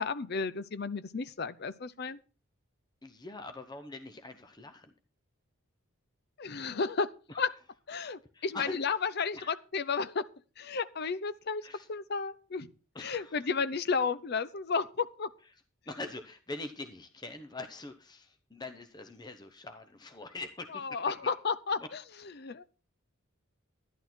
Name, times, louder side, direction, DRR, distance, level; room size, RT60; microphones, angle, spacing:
voice 1, 0.0-2.2 6.4-7.1 7.4-7.5 7.9-10.2 10.6-11.6 11.9-12.7 13.0-15.3 20.7-22.0 22.4-22.6, left 5 dB, 50° left, 0.6 m, -32 dB
voice 2, 3.0-4.9 7.3-7.5 8.3-9.0 9.3-9.6 11.6-11.9 12.9-13.5 15.9-21.3 21.8-21.9, left 2 dB, 20° left, 0.8 m, -43 dB
11.5 x 11.0 x 4.4 m
head